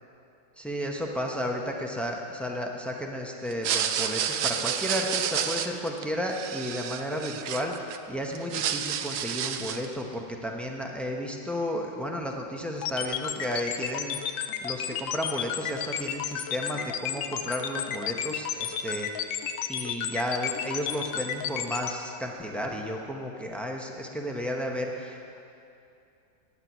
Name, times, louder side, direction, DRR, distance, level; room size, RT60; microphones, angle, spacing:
voice 1, 0.6-19.3 19.7-25.4, equal, ahead, 0 dB, 0.3 m, -33 dB
sound 1, 3.5-8.0 8.3-9.9, right 9 dB, 70° right, 1.0 m, -30 dB
sound 2, 12.8-21.9, left 9 dB, 85° left, 1.4 m, -31 dB
9.6 x 9.0 x 9.0 m, 2.6 s
omnidirectional pair, 2.0 m